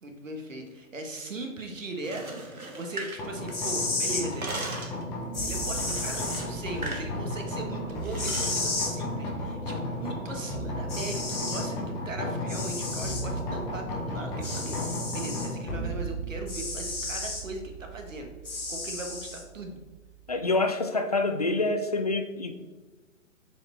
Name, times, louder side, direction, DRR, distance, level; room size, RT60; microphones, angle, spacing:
voice 1, 0.0-4.6 5.4-18.3 18.7-19.8, right 2 dB, 65° right, 4 dB, 1.5 m, -39 dB
sound 1, 1.9-3.8 4.1-5.0 5.8-7.1 7.4-7.6 8.0-8.6, right 2 dB, 90° right, 1.3 m, -39 dB
sound 2, 3.2-20.4, equal, 10° left, 0.8 m, -35 dB
sound 3, 3.5-4.3 5.3-6.4 8.2-8.9 10.4-10.5 10.9-11.7 12.5-13.3 14.4-15.5 16.5-17.4 18.5-19.4, left 3 dB, 80° left, 1.8 m, -33 dB
voice 2, 20.3-22.5, left 2 dB, 30° left, 7 dB, 0.4 m, -26 dB
6.8 x 4.9 x 4.1 m, 1.3 s
figure-of-eight pair, 130°, 42 cm